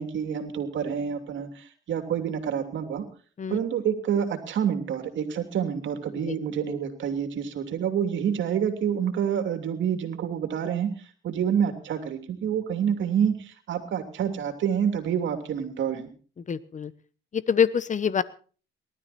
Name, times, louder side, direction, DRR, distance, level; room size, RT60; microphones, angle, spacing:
voice 1, 0.0-3.0 3.5-10.9 11.2-16.1, right 8 dB, 70° right, 7 dB, 3.0 m, -28 dB
voice 2, 16.5-16.9 17.3-18.2, left 7 dB, 40° left, 16 dB, 1.1 m, -25 dB
19.5 x 12.5 x 4.3 m, 0.39 s
cardioid pair, 90°, 20 cm